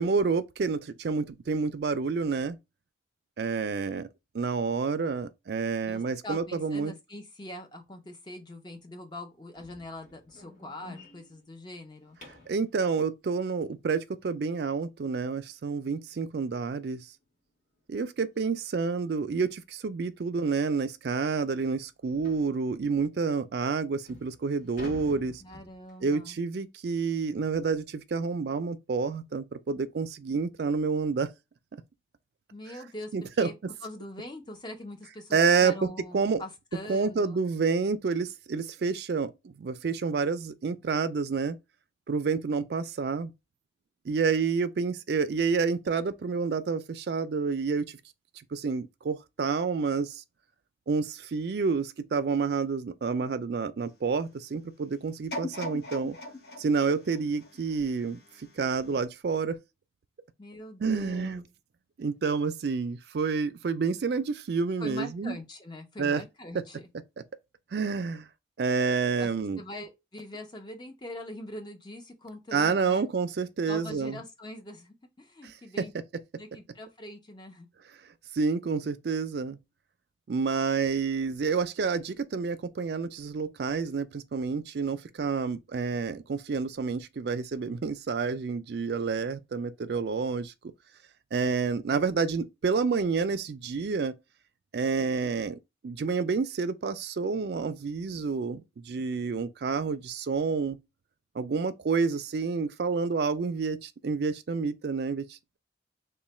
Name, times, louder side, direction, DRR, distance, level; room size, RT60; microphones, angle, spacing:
voice 1, 0.0-2.6 3.4-4.1 4.3-6.9 12.5-17.1 17.9-25.4 26.0-31.3 33.1-33.5 35.3-36.4 36.9-41.6 42.1-43.3 44.1-48.0 48.5-50.2 50.9-56.2 56.6-58.2 58.6-59.6 60.8-61.4 62.0-65.4 66.0-66.2 67.7-68.3 68.6-69.6 72.5-74.2 75.4-75.8 78.3-79.6 80.3-90.5 91.3-94.1 94.7-100.8 101.4-105.6, right 5 dB, 60° right, 0.4 m, -29 dB
voice 2, 5.9-12.2 25.4-26.4 32.5-33.5 33.8-37.4 60.4-61.5 64.8-66.9 69.2-69.3 69.6-73.0 73.7-75.9 76.4-77.7, left 1 dB, 25° left, 0.6 m, -43 dB
sound 1, 9.5-12.6 15.4-15.5 16.0-16.2 16.6-16.7 17.2-17.3 18.3-18.5 18.9-19.0 19.7-19.8 20.1-20.2 20.7-20.8 22.2-22.5 23.3-23.4 23.9-26.1, left 2 dB, 40° left, 1.4 m, -49 dB
sound 2, 55.3-58.4 58.9-59.0, left 1 dB, 65° left, 0.8 m, -39 dB
3.0 x 2.2 x 4.2 m
head